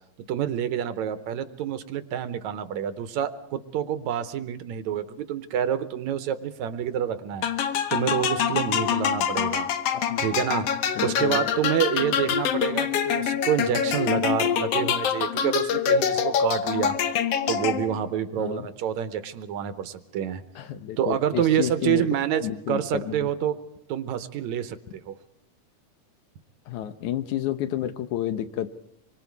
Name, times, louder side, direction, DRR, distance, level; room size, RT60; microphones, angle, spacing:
voice 1, 0.3-7.5 7.9-9.7 10.2-10.7 11.0-17.0 17.5-20.4 21.0-23.6 23.9-25.1, right 9 dB, 75° right, 11 dB, 2.3 m, -27 dB
sound 1, 7.4-18.1, left 8 dB, 65° left, 1.9 m, -25 dB
voice 2, 11.0-11.5 18.4-18.7 20.6-22.1 22.4-23.3 26.7-28.7, left 11 dB, 80° left, 10 dB, 2.4 m, -30 dB
26.0 x 24.0 x 4.7 m, 0.73 s
omnidirectional pair, 3.4 m